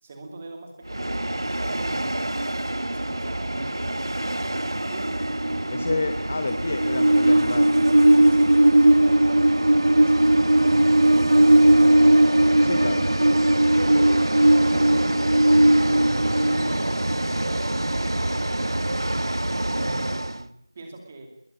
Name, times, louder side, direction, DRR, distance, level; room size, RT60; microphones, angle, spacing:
voice 1, 0.0-2.2 2.9-5.2 8.3-10.7 11.1-12.2 14.0-16.1 16.4-19.1 19.6-21.3, right 2 dB, 15° right, 3 dB, 2.5 m, -42 dB
Train, 0.9-20.4, right 1 dB, 75° right, 1.5 m, -20 dB
voice 2, 5.7-7.7 12.6-13.1, left 3 dB, 20° left, 8 dB, 0.8 m, -29 dB
21.0 x 19.5 x 9.0 m, 0.75 s
figure-of-eight pair, 175°, 2 cm